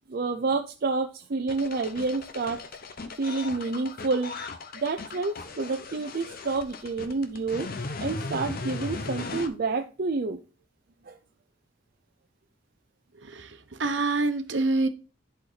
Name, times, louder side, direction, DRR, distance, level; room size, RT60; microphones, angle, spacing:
voice 1, 0.1-2.6 3.2-4.4 4.7-7.7 8.0-10.4 11.0-11.2, right 3 dB, 55° right, 5 dB, 0.5 m, -29 dB
sound 1, 1.5-9.5, left 3 dB, 50° left, 0.9 m, -37 dB
voice 2, 13.2-14.9, right 3 dB, 75° right, 8 dB, 1.0 m, -26 dB
10.5 x 4.3 x 4.0 m, 0.34 s
head